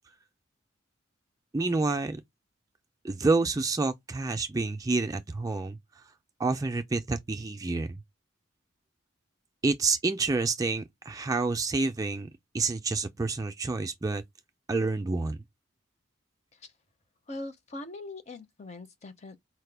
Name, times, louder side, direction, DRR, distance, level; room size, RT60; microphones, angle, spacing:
voice 1, 1.5-2.2 3.0-6.0 6.4-8.0 9.6-14.2 14.7-15.4, right 3 dB, 15° right, 0.3 m, -28 dB
voice 2, 17.3-19.4, left 2 dB, 35° left, 0.5 m, -41 dB
4.6 x 2.2 x 3.2 m
head